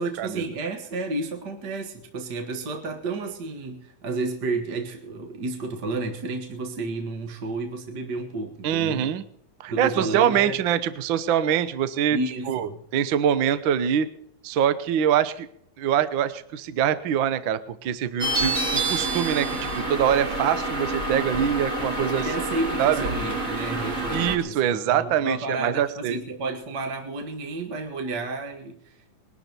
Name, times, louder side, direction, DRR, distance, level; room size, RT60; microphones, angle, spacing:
voice 1, 0.0-9.1 9.7-10.6 12.1-12.8 22.1-29.2, right 3 dB, 45° right, 5 dB, 1.5 m, -31 dB
voice 2, 8.6-9.2 9.6-12.2 12.5-14.1 14.4-15.5 15.8-22.3 22.8-23.1 24.1-26.2, right 9 dB, 70° right, 13 dB, 1.2 m, -24 dB
sound 1, 18.2-24.4, right 2 dB, 30° right, 2.2 m, -27 dB
21.0 x 12.0 x 4.5 m, 0.68 s
omnidirectional pair, 3.5 m